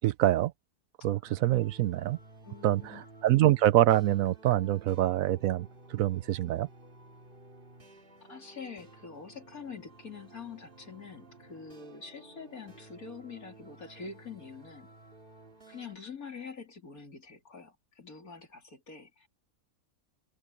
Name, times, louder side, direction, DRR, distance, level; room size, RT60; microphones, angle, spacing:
voice 1, 0.0-0.5 1.0-2.2 2.6-6.7, right 14 dB, 75° right, 1.0 m, -25 dB
sound 1, 1.2-16.0, right 2 dB, 35° right, 2.6 m, -54 dB
voice 2, 2.4-3.0 8.2-14.9 15.7-19.3, left 5 dB, 80° left, 3.6 m, -45 dB
open air
omnidirectional pair, 1.5 m